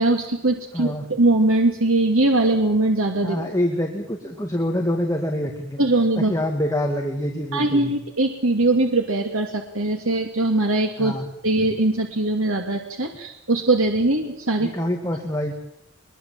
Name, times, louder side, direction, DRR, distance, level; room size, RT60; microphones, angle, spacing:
voice 1, 0.0-3.4 5.8-6.3 7.5-11.2 11.4-14.7, right 2 dB, 85° right, 3 dB, 2.6 m, -21 dB
voice 2, 0.7-1.0 3.2-5.8 6.2-7.9 11.0-11.3 14.6-15.5, left 1 dB, 15° left, 2 dB, 2.3 m, -26 dB
22.0 x 22.0 x 7.7 m, 0.80 s
head